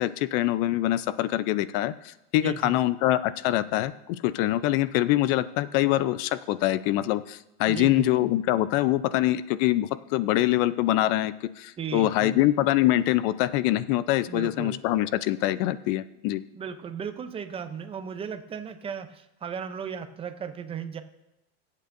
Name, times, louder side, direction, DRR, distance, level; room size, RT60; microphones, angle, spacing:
voice 1, 0.0-16.4, left 15 dB, 55° left, 15 dB, 0.6 m, -24 dB
voice 2, 2.4-2.8 7.6-8.1 11.8-12.4 14.3-14.8 16.5-21.0, right 7 dB, 15° right, 9 dB, 0.6 m, -36 dB
21.0 x 8.4 x 2.6 m, 0.90 s
supercardioid pair, 155°, 34 cm